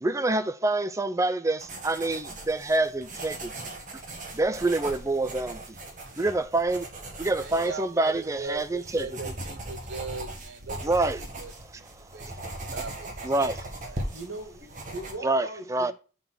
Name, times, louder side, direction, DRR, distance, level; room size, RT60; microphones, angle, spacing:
voice 1, 0.0-3.7 4.3-5.8 6.2-6.9 7.2-9.1 10.8-11.2 12.0-12.4 13.2-13.6 15.2-15.9, right 2 dB, 15° right, 0.4 m, -27 dB
sound 1, 1.6-15.1, right 1 dB, 40° right, 1.6 m, -39 dB
voice 2, 7.4-10.9 11.4-13.1 13.4-13.5 13.8-14.2, right 4 dB, 60° right, 0.6 m, -39 dB
voice 3, 14.1-15.9, right 2 dB, 75° right, 2.3 m, -39 dB
7.0 x 3.9 x 6.3 m
head